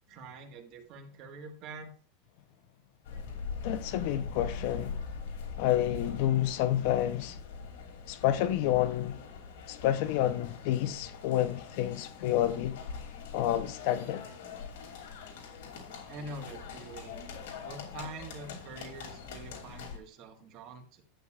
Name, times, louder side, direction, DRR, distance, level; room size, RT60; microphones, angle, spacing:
voice 1, 0.1-1.9 16.1-17.2 17.6-21.0, right 2 dB, 40° right, 1.6 m, -45 dB
sound 1, 3.0-20.0, left 5 dB, 75° left, 2.7 m, -43 dB
voice 2, 3.6-5.0 5.6-7.4 8.1-9.2 9.7-12.8 13.3-14.2, left 12 dB, 55° left, 0.7 m, -29 dB
11.5 x 8.0 x 2.4 m
supercardioid pair, 155°, 0 cm